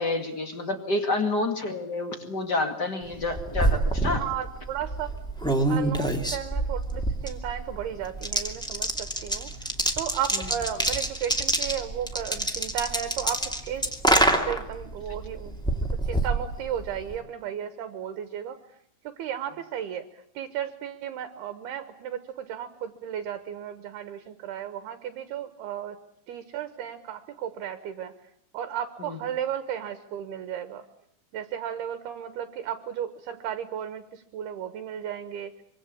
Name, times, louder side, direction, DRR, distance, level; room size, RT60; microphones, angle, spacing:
voice 1, 0.0-4.2 29.0-29.2, left 2 dB, 35° left, 7 dB, 1.7 m, -28 dB
sound 1, 3.1-17.2, right 1 dB, 5° left, 0.7 m, -27 dB
voice 2, 4.2-5.1 5.7-9.7 10.0-18.6 19.0-26.0 26.3-28.1 28.5-30.9 31.3-35.5, right 9 dB, 70° right, 10 dB, 2.9 m, -34 dB
25.0 x 25.0 x 8.5 m, 0.67 s
omnidirectional pair, 5.4 m